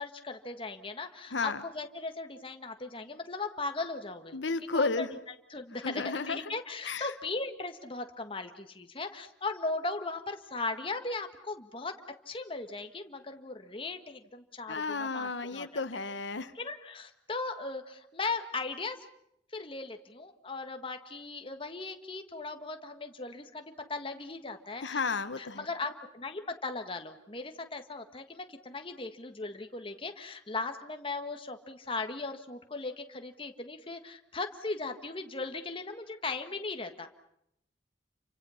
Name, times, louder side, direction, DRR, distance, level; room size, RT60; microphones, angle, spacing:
voice 1, 0.0-4.4 4.7-5.1 5.5-12.0 12.2-15.8 16.5-19.1 19.5-23.6 23.9-25.0 25.4-37.1, left 3 dB, 30° left, 6 dB, 1.6 m, -38 dB
voice 2, 1.3-1.6 4.3-5.1 5.8-6.4 6.8-7.1 14.7-16.5 24.8-25.7, left 4 dB, 85° left, 11 dB, 1.1 m, -32 dB
29.5 x 25.0 x 5.7 m, 0.76 s
head